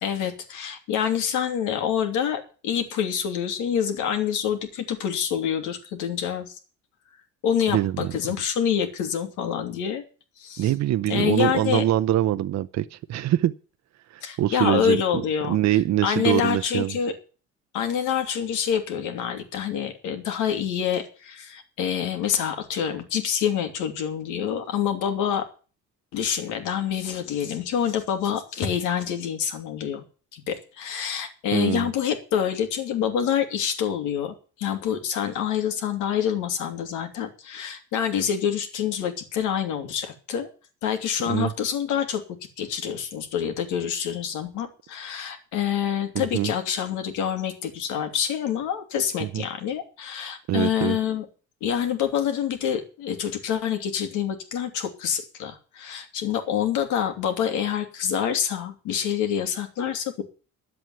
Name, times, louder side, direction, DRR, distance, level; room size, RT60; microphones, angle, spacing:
voice 1, 0.0-6.6 7.4-10.0 10.4-10.7 11.1-11.8 14.2-17.1 17.7-25.4 26.1-30.0 30.3-40.5 40.8-42.2 42.6-51.2 51.6-60.2, left 8 dB, 85° left, 2.9 m, -27 dB
voice 2, 7.7-8.1 10.6-13.5 14.1-15.0 15.5-17.0 31.5-31.9 41.3-41.5 46.1-46.5 49.2-49.4 50.5-51.0, right 13 dB, 60° right, 0.8 m, -24 dB
11.0 x 7.9 x 9.6 m
cardioid pair, 85°, 30 cm